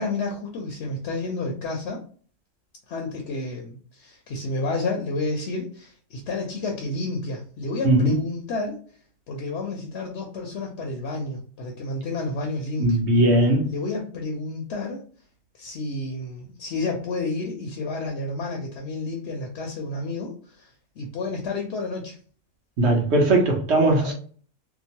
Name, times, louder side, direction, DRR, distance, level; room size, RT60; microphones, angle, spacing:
voice 1, 0.0-2.0 2.9-8.8 9.3-13.0 13.7-15.0 15.6-20.7 21.0-22.2 24.0-24.1, left 3 dB, 65° left, 0.8 m, -30 dB
voice 2, 7.8-8.2 12.8-13.7 22.8-24.1, right 1 dB, 60° right, 1.0 m, -19 dB
2.9 x 2.0 x 2.8 m
omnidirectional pair, 1.4 m